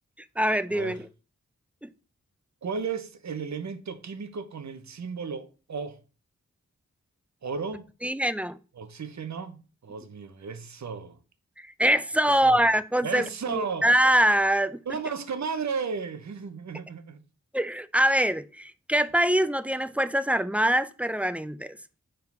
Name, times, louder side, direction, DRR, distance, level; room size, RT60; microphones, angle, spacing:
voice 1, 0.4-1.0 1.8-1.9 8.0-8.6 11.6-14.8 17.5-21.8, right 1 dB, 5° right, 0.3 m, -24 dB
voice 2, 2.6-6.0 7.4-7.9 8.7-11.2 12.4-12.6 13.0-13.9 14.9-17.2, right 5 dB, 65° right, 0.8 m, -34 dB
4.7 x 3.8 x 5.3 m
wide cardioid pair, 75°, 30 cm